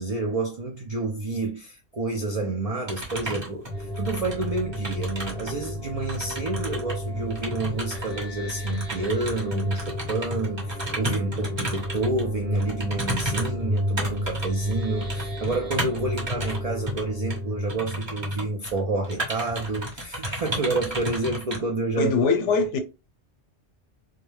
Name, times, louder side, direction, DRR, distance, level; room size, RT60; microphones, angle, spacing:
voice 1, 0.0-22.1, right 2 dB, 70° right, 0.3 m, -29 dB
sound 1, 2.9-5.7 6.0-12.2 12.6-16.6 16.9-17.0 17.3-17.4 17.7-18.8 19.0-21.6, right 1 dB, 25° right, 0.8 m, -33 dB
sound 2, 3.7-19.2, equal, 5° left, 0.5 m, -32 dB
voice 2, 22.0-22.8, left 4 dB, 85° left, 0.9 m, -22 dB
2.3 x 2.0 x 3.1 m
omnidirectional pair, 1.2 m